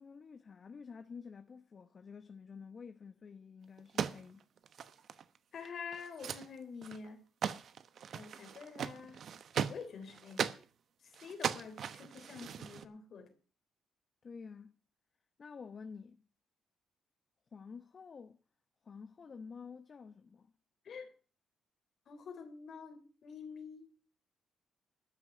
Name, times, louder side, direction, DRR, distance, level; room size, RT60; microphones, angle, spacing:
voice 1, 0.0-4.4 14.2-14.7 15.4-16.2 17.5-18.4 18.8-20.5, left 5 dB, 45° left, 1.0 m, -50 dB
sound 1, 3.8-5.4 5.6-5.7 5.9-6.5 6.8-7.1 7.4-10.6 11.1-12.8, right 8 dB, 60° right, 1.0 m, -39 dB
voice 2, 5.5-7.2 8.1-9.2 9.7-10.5 11.0-13.3 20.9-21.1 22.1-23.9, left 5 dB, 60° left, 3.5 m, -47 dB
13.0 x 6.1 x 9.3 m
cardioid pair, 90°, 0 cm